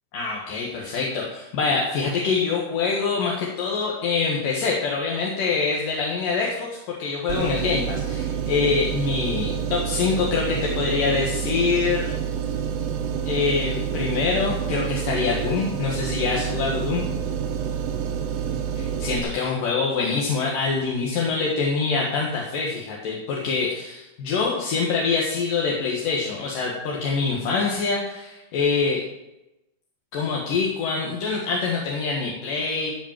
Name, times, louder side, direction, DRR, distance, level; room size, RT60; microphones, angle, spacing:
voice 1, 0.1-12.1 13.2-17.1 19.0-29.0 30.1-32.9, left 4 dB, 75° left, -3 dB, 3.2 m, -25 dB
sound 1, 7.3-19.2, right 8 dB, 80° right, 2.8 m, -28 dB
15.5 x 5.2 x 7.5 m, 0.93 s
omnidirectional pair, 4.0 m